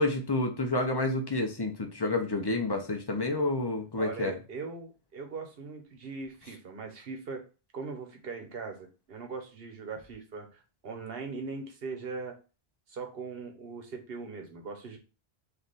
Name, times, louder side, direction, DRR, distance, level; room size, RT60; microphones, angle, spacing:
voice 1, 0.0-4.3, left 2 dB, 30° left, 0.6 m, -29 dB
voice 2, 3.9-7.4 7.7-12.3 12.9-15.0, right 4 dB, 70° right, 1.1 m, -40 dB
3.2 x 2.8 x 4.0 m
omnidirectional pair, 1.0 m